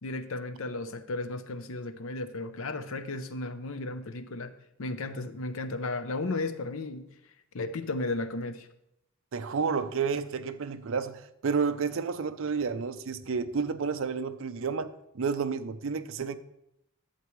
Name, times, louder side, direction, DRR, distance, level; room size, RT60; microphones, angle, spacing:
voice 1, 0.0-4.5 4.8-7.1 7.5-8.7, left 2 dB, 65° left, 0.6 m, -34 dB
voice 2, 9.3-16.4, right 5 dB, 60° right, 0.5 m, -31 dB
11.5 x 8.1 x 3.1 m
head